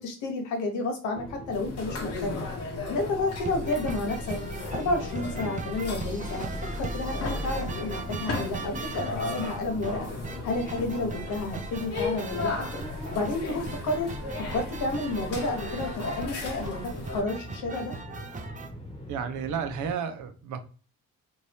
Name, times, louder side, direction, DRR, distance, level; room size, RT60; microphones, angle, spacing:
voice 1, 0.0-2.5 2.9-4.3 4.7-6.5 6.8-10.1 10.4-12.7 13.1-14.1 14.5-16.8 17.1-17.9, left 2 dB, 80° left, 1.0 m, -31 dB
sound 1, 1.1-19.9, left 1 dB, 20° left, 1.0 m, -42 dB
sound 2, 1.5-17.2, left 3 dB, 55° left, 1.0 m, -36 dB
sound 3, 3.3-18.7, right 4 dB, 25° right, 0.5 m, -40 dB
voice 2, 19.1-20.6, right 7 dB, 75° right, 0.6 m, -32 dB
2.7 x 2.6 x 3.3 m
cardioid pair, 90°, 30 cm